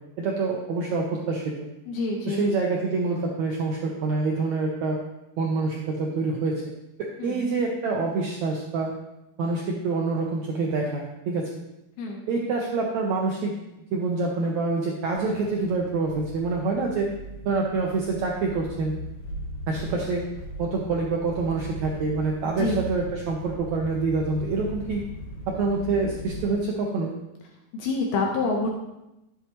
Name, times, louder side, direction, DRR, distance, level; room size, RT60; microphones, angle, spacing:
voice 1, 0.2-1.7 2.3-5.0 5.4-6.6 7.0-8.9 9.4-11.5 12.3-13.6 13.9-17.1 17.4-19.0 19.7-20.2 20.6-25.0 25.5-27.1, right 3 dB, 80° right, -1 dB, 1.6 m, -26 dB
voice 2, 1.9-2.5 7.2-7.4 12.0-12.2 22.6-22.8 27.7-28.7, left 3 dB, 75° left, 0 dB, 2.8 m, -27 dB
sound 1, 15.1-26.5, left 1 dB, 50° left, 1.4 m, -39 dB
13.5 x 8.0 x 3.1 m, 0.92 s
omnidirectional pair, 4.6 m